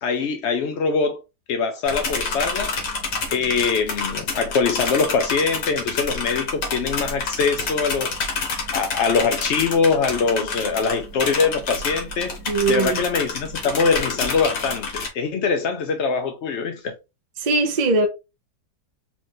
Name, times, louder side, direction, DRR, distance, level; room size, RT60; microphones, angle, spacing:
voice 1, 0.0-1.2 1.5-2.8 3.3-8.1 8.7-12.4 12.7-17.0, left 5 dB, 65° left, 0.7 m, -23 dB
sound 1, 1.9-15.1, left 4 dB, 90° left, 2.0 m, -28 dB
voice 2, 12.5-13.0 17.4-18.1, right 3 dB, 50° right, 0.5 m, -20 dB
4.8 x 2.5 x 3.7 m
omnidirectional pair, 1.8 m